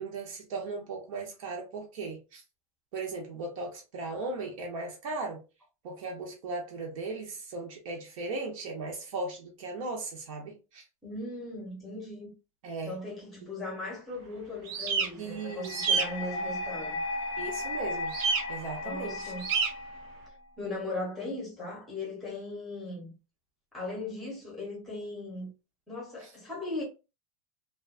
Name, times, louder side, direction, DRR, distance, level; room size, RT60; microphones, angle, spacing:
voice 1, 0.0-2.4 2.9-5.4 5.8-10.8 12.6-12.9 15.2-15.7 17.4-18.1 18.5-19.3, right 3 dB, 60° right, 0.8 m, -37 dB
voice 2, 11.0-12.3 12.8-17.0 18.8-19.5 20.6-23.1 23.7-25.5 25.9-26.8, left 2 dB, ahead, 0.8 m, -38 dB
sound 1, 14.7-15.1 15.6-16.0 18.1-18.4 19.4-19.7, right 5 dB, 35° right, 0.4 m, -27 dB
sound 2, 15.4-20.4, left 2 dB, 50° left, 0.6 m, -36 dB
2.5 x 2.3 x 2.4 m
supercardioid pair, 180°, 19 cm